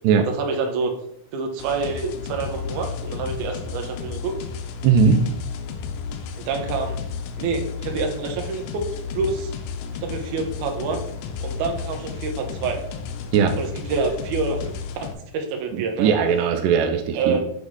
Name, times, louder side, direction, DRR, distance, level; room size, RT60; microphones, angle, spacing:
voice 1, 0.2-0.9 1.3-4.4 6.4-7.0 7.4-8.9 9.1-9.5 10.0-11.1 11.4-12.8 13.6-14.7 15.0-16.1 17.1-17.4, right 4 dB, 75° right, 4 dB, 2.2 m, -27 dB
sound 1, 1.6-15.1, left 5 dB, 80° left, 2.1 m, -32 dB
voice 2, 4.8-5.2 13.3-13.6 15.7-17.4, right 6 dB, 90° right, 6 dB, 2.2 m, -19 dB
8.1 x 3.5 x 3.6 m, 0.70 s
omnidirectional pair, 3.8 m